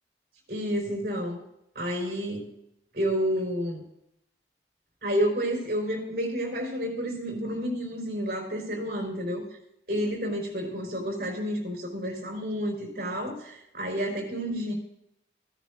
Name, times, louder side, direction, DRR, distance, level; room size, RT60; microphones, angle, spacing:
voice 1, 0.5-1.4 1.7-2.5 2.9-3.8 5.0-9.4 9.9-14.7, equal, 55° right, 0 dB, 4.3 m, -30 dB
16.5 x 10.5 x 2.6 m, 0.79 s
head